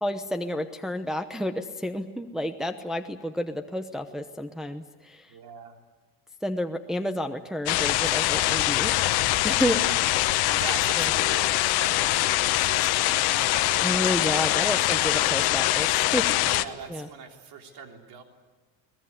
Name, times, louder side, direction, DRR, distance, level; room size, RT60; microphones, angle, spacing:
voice 1, 0.0-5.3 6.4-9.9 11.0-11.1 13.8-16.3 16.9-17.1, equal, ahead, 5 dB, 0.9 m, -30 dB
voice 2, 5.3-5.8 10.5-15.1 16.4-18.2, right 6 dB, 60° right, 3 dB, 3.5 m, -42 dB
sound 1, 7.7-16.6, left 17 dB, 70° left, 1.1 m, -23 dB
22.5 x 20.5 x 9.6 m, 1.2 s
cardioid pair, 135°, 40 cm